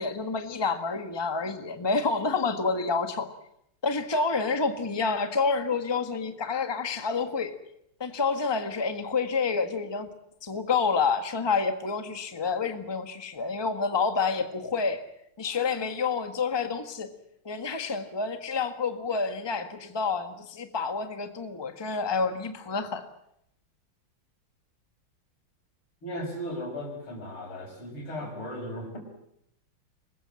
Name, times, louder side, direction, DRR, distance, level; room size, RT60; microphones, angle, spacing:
voice 1, 0.0-3.3 3.8-7.5 8.0-10.1 10.4-15.0 15.4-17.1 17.4-23.0, left 4 dB, 15° left, 7 dB, 1.3 m, -28 dB
voice 2, 26.0-29.0, equal, 85° left, 3 dB, 6.6 m, -36 dB
24.0 x 21.0 x 7.6 m, 0.76 s
omnidirectional pair, 2.3 m